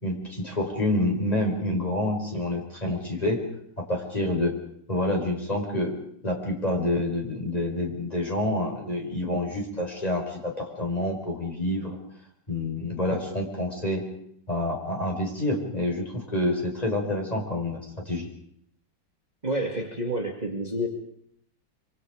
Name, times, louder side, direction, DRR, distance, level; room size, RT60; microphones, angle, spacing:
voice 1, 0.0-3.4 3.8-4.5 4.9-5.9 6.2-12.0 12.5-14.1 14.5-18.3, left 1 dB, 20° left, 1 dB, 5.1 m, -28 dB
voice 2, 19.4-20.9, right 1 dB, 20° right, 1 dB, 2.3 m, -29 dB
25.5 x 25.0 x 5.1 m, 0.66 s
omnidirectional pair, 2.0 m